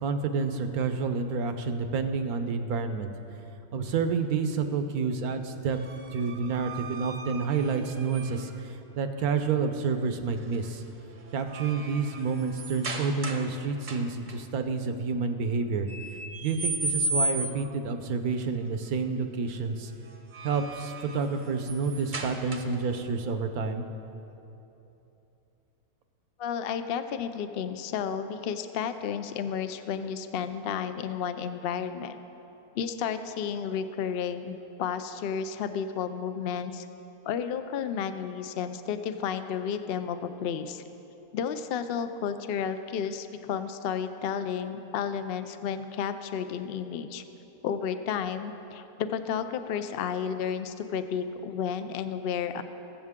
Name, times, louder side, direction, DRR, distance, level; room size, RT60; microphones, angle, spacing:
voice 1, 0.0-3.1 3.7-5.8 6.1-8.7 8.9-10.8 11.3-15.9 16.4-19.9 20.4-23.8, right 5 dB, 80° right, 7 dB, 1.2 m, -29 dB
sound 1, 5.7-8.6 10.4-10.7 11.1-13.5 13.8-14.4 15.9-17.8 20.1-22.9, right 2 dB, 40° right, 0.8 m, -35 dB
voice 2, 26.4-32.1 32.7-36.9 37.2-40.8 41.3-47.2 47.6-52.6, left 7 dB, 70° left, 9 dB, 0.5 m, -32 dB
21.0 x 7.5 x 3.6 m, 2.9 s
omnidirectional pair, 1.6 m